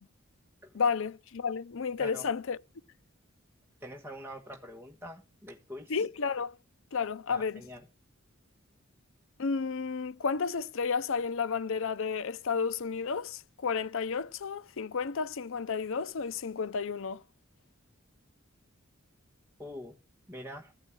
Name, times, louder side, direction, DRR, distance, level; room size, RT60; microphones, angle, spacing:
voice 1, 0.7-2.6 5.9-6.5 6.9-7.6 9.4-17.2, left 5 dB, 65° left, 0.6 m, -32 dB
voice 2, 3.8-6.0 7.3-7.8 19.6-20.0 20.3-20.7, equal, 10° right, 1.5 m, -44 dB
15.0 x 5.4 x 8.8 m
head